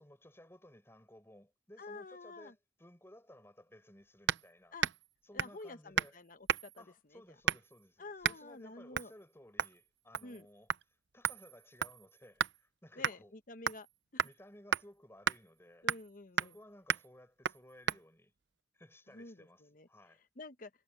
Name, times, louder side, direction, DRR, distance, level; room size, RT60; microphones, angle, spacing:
voice 1, 0.0-4.8 5.2-6.2 6.8-13.3 14.2-15.9 16.3-18.3 18.7-20.2, left 1 dB, 15° left, 6.3 m, -58 dB
voice 2, 1.8-2.5 4.7-4.9 5.3-6.8 8.0-9.1 10.2-10.5 13.0-13.9 14.1-14.2 15.8-16.5 19.1-19.9 20.4-20.7, left 3 dB, 45° left, 1.1 m, -49 dB
sound 1, 4.3-4.5 4.8-5.1 5.4-5.6 6.0-6.2 6.5-6.8 7.5-7.8 8.2-8.4 8.9-9.1 9.6-9.8 10.1-10.4 10.7-10.8 11.2-12.6 13.0-13.2 13.7-13.9 14.2-14.3 14.7-14.8 15.3-15.4 15.9-16.1 16.4-16.6 16.9-17.1 17.4-17.6 17.9-18.0, right 7 dB, 70° right, 0.6 m, -33 dB
head